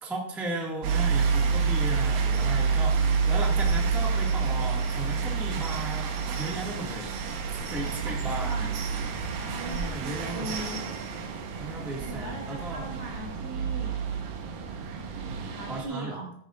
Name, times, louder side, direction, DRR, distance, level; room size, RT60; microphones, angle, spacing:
voice 1, 0.0-7.1 7.5-8.6 9.6-10.6 11.6-12.9 15.3-16.2, right 2 dB, ahead, -2 dB, 0.6 m, -36 dB
sound 1, 0.8-15.8, right 5 dB, 80° right, 2.9 m, -28 dB
voice 2, 7.8-8.8 9.5-10.8 12.0-14.0 14.7-16.3, right 1 dB, 50° right, 0 dB, 2.2 m, -40 dB
14.5 x 9.7 x 2.5 m, 0.68 s
omnidirectional pair, 4.0 m